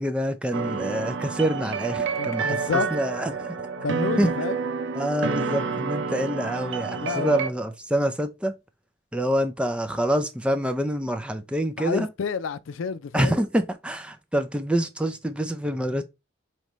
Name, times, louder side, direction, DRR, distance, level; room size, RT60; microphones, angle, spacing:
voice 1, 0.0-2.6 2.9-3.5 4.2-4.3 4.9-8.5 9.1-12.1 13.1-16.0, equal, 5° right, 0.4 m, -26 dB
sound 1, 0.5-7.5, right 5 dB, 70° right, 0.5 m, -29 dB
voice 2, 2.2-2.9 3.8-4.6 7.0-7.4 11.8-13.4, left 5 dB, 85° left, 0.4 m, -29 dB
5.1 x 3.2 x 3.0 m
head